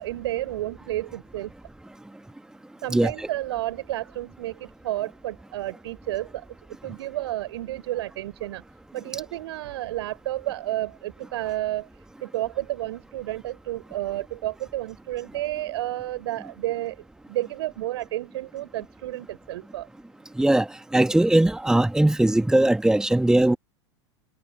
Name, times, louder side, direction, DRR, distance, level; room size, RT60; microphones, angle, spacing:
voice 1, 0.0-1.5 2.8-6.4 6.8-8.6 8.9-11.9 12.2-17.0 17.3-19.9, right 15 dB, 65° right, 6.9 m, -31 dB
voice 2, 2.9-3.3 20.4-20.7 20.9-23.6, right 1 dB, 5° right, 1.8 m, -20 dB
figure-of-eight pair, 85°, 15 cm